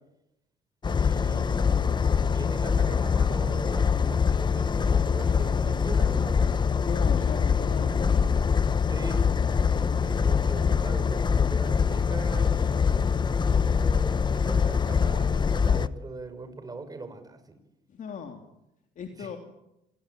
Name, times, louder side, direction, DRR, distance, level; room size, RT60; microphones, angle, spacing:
sound 1, 0.8-15.9, left 6 dB, 25° left, 0.9 m, -24 dB
voice 1, 1.0-6.7 8.9-17.6 19.2-19.4, right 3 dB, 20° right, 8 dB, 5.8 m, -41 dB
voice 2, 6.8-8.4 17.9-18.4 19.0-19.4, left 6 dB, 50° left, 4 dB, 3.2 m, -37 dB
27.5 x 22.0 x 9.2 m, 0.88 s
cardioid pair, 110°, 17 cm